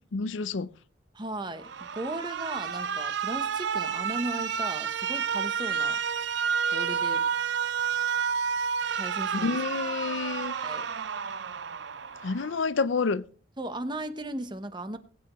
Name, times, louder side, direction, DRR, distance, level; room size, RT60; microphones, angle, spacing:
voice 1, 0.1-0.7 9.4-10.5 12.2-13.2, left 4 dB, 80° left, 0.5 m, -28 dB
voice 2, 1.1-6.0 6.7-7.3 8.9-9.6 10.6-10.9 13.6-15.0, right 1 dB, 25° right, 0.9 m, -36 dB
Alarm, 1.6-12.6, right 7 dB, 65° right, 0.5 m, -30 dB
22.0 x 8.9 x 3.1 m
head